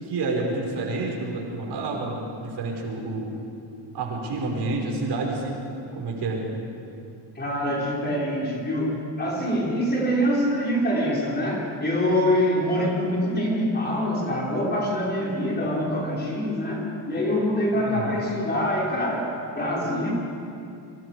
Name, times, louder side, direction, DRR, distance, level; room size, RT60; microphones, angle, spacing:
voice 1, 0.0-3.3 3.9-5.5 6.0-6.5 17.8-18.2, right 3 dB, 55° right, -1 dB, 5.8 m, -29 dB
voice 2, 7.4-20.1, equal, 20° left, -4 dB, 5.7 m, -25 dB
30.0 x 26.0 x 5.2 m, 2.6 s
cardioid pair, 145°, 47 cm